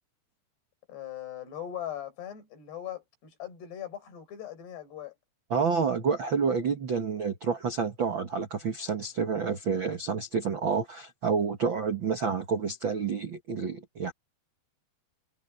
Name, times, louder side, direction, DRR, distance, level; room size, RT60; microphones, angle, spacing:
voice 1, 0.9-5.2, left 11 dB, 75° left, 7.7 m, -40 dB
voice 2, 5.5-14.1, right 5 dB, 65° right, 1.2 m, -29 dB
omnidirectional pair, 4.8 m